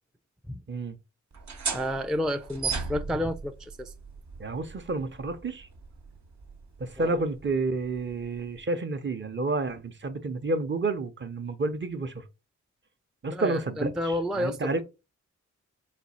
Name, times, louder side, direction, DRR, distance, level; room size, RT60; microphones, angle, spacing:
sound 1, 1.3-8.6, right 5 dB, 65° right, 1.0 m, -38 dB
voice 1, 1.7-3.9 7.0-7.1 13.3-14.8, left 1 dB, ahead, 0.3 m, -30 dB
voice 2, 4.4-5.7 6.8-12.2 13.2-14.8, right 3 dB, 40° right, 0.7 m, -30 dB
4.1 x 2.4 x 4.1 m
cardioid pair, 70°, 31 cm